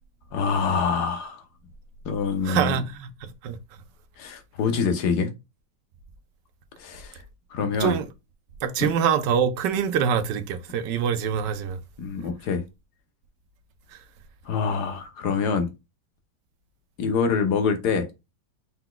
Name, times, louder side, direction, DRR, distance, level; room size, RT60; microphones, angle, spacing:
voice 1, 0.3-1.4 2.0-2.8 4.2-5.3 6.8-7.2 7.5-8.0 8.8-8.9 12.0-12.6 14.5-15.7 17.0-18.1, left 5 dB, 65° left, 1.3 m, -25 dB
voice 2, 2.4-3.1 3.4-3.6 7.8-8.0 8.6-11.8, right 7 dB, 75° right, 1.3 m, -24 dB
5.5 x 3.9 x 2.3 m
omnidirectional pair, 2.0 m